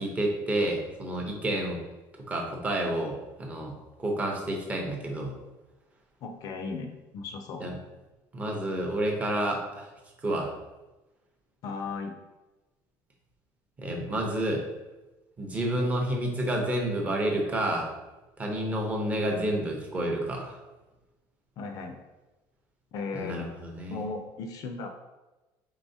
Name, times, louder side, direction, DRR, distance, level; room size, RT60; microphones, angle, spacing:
voice 1, 0.0-1.8 2.3-5.4 7.6-7.8 8.3-9.9 10.2-10.5 13.8-14.6 15.4-17.9 18.4-20.6 23.1-24.0, right 1 dB, 15° right, 0 dB, 0.6 m, -29 dB
voice 2, 6.2-7.7 11.6-12.1 21.6-22.0 22.9-23.4 23.9-24.9, left 4 dB, 45° left, 5 dB, 0.4 m, -36 dB
4.7 x 3.8 x 2.7 m, 1.1 s
cardioid pair, 175°, 9 cm